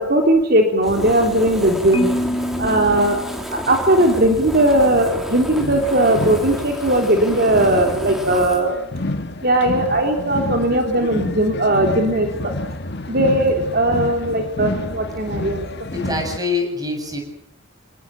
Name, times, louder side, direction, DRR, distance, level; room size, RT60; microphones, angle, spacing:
voice 1, 0.0-2.1 2.6-3.2 3.5-8.7 9.4-12.5 13.1-15.6, right 1 dB, 45° right, 3 dB, 3.3 m, -18 dB
Fire, 0.8-8.6, equal, ahead, 3.2 m, -31 dB
Marimba xylophone, 1.9-4.1, equal, 20° left, 1.8 m, -26 dB
sound 1, 5.6-16.4, left 2 dB, 50° left, 1.7 m, -29 dB
voice 2, 15.9-17.2, left 3 dB, 15° right, 4 dB, 7.4 m, -24 dB
28.0 x 20.0 x 9.2 m, 0.73 s
head